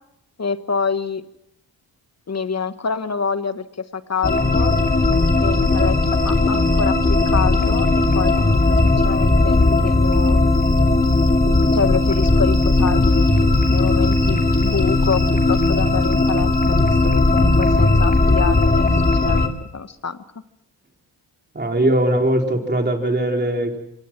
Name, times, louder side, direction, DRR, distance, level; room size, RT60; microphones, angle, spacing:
voice 1, 0.4-1.2 2.3-4.7 5.4-10.4 11.7-15.2 15.5-20.2, left 5 dB, 35° left, 12 dB, 1.3 m, -27 dB
sound 1, 4.2-19.5, left 2 dB, 20° left, 2.5 m, -17 dB
voice 2, 21.5-23.8, right 1 dB, 25° right, 2 dB, 3.9 m, -20 dB
25.0 x 17.5 x 6.0 m, 0.80 s
supercardioid pair, 50°, 44 cm